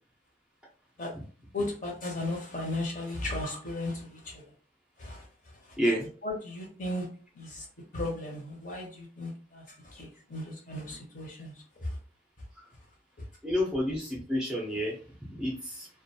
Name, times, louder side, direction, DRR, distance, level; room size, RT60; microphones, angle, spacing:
voice 1, 1.5-4.4 5.0-5.8 6.2-7.1 7.3-7.7 7.9-12.0 13.2-13.3, left 1 dB, 45° left, 0 dB, 0.8 m, -36 dB
voice 2, 5.8-6.1 13.4-15.0 15.3-15.9, equal, 5° right, -4 dB, 0.5 m, -29 dB
2.3 x 2.2 x 2.7 m, 0.40 s
head